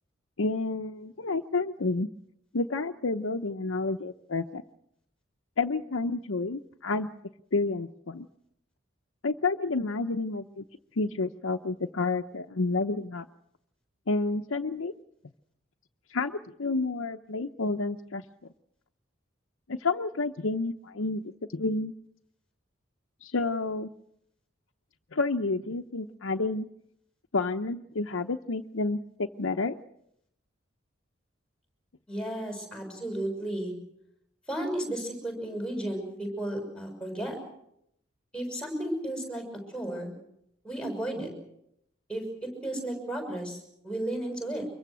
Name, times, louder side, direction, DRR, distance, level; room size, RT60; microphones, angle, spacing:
voice 1, 0.4-2.1 2.5-4.6 5.6-7.1 7.5-8.3 9.2-10.6 11.0-13.3 14.1-14.9 16.1-18.2 19.7-21.2 21.5-21.9 23.2-23.9 25.1-26.7 27.3-29.8, left 3 dB, 85° left, 4 dB, 0.8 m, -30 dB
voice 2, 32.1-33.7 34.5-37.4 38.3-39.4 39.7-40.1 40.6-41.3 42.1-44.7, right 1 dB, 5° left, 4 dB, 6.2 m, -33 dB
24.5 x 22.5 x 6.2 m, 0.76 s
head